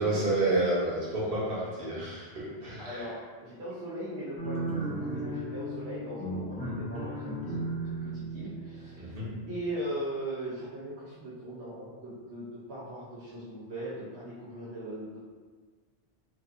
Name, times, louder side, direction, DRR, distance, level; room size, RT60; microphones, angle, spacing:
voice 1, 0.0-3.0 9.0-9.3, right 2 dB, 60° right, -8 dB, 1.3 m, -29 dB
voice 2, 2.4-4.7 4.9-9.2 9.5-15.2, right 1 dB, 75° right, -10 dB, 1.0 m, -39 dB
sound 1, 4.4-9.7, right 1 dB, 10° left, 0.4 m, -36 dB
4.5 x 2.6 x 2.6 m, 1.4 s
omnidirectional pair, 1.1 m